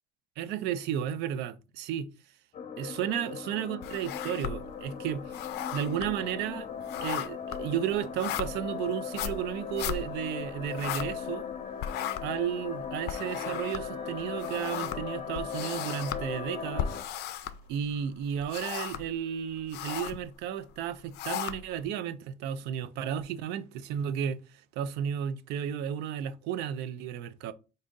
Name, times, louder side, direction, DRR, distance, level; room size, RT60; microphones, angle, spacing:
voice 1, 0.4-2.1 2.8-5.3 5.7-6.7 7.0-11.5 12.2-16.9 17.7-24.4 24.8-27.5, right 9 dB, 90° right, 0.4 m, -33 dB
sound 1, 2.5-17.0, left 7 dB, 45° left, 0.7 m, -38 dB
sound 2, 3.8-4.8 5.1-11.5 11.8-18.0 18.4-19.2 19.5-20.3 20.8-21.8, left 10 dB, 75° left, 0.4 m, -37 dB
Wind instrument woodwind instrument, 13.3-17.5, right 6 dB, 35° right, 0.6 m, -54 dB
3.8 x 2.7 x 3.7 m
cardioid pair, 110°, 17 cm